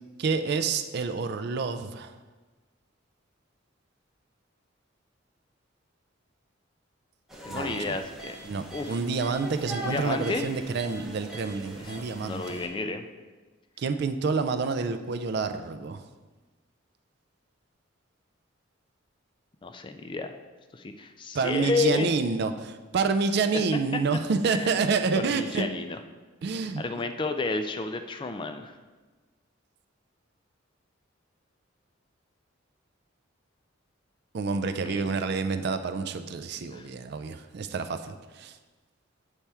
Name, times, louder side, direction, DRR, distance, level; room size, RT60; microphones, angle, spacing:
voice 1, 0.2-2.1 7.5-8.0 8.5-12.6 13.8-16.0 21.3-25.7 26.4-26.8 34.3-38.6, right 4 dB, 55° right, 9 dB, 0.4 m, -28 dB
sound 1, 7.3-12.7, right 1 dB, ahead, 0.7 m, -41 dB
voice 2, 7.4-8.4 8.7-9.0 9.8-10.5 11.8-13.1 19.6-20.3 20.7-22.1 23.5-23.6 24.5-24.8 25.2-26.0 26.8-28.8 34.9-35.0 36.7-36.9, left 3 dB, 25° left, 8 dB, 0.3 m, -31 dB
8.2 x 3.5 x 4.3 m, 1.3 s
head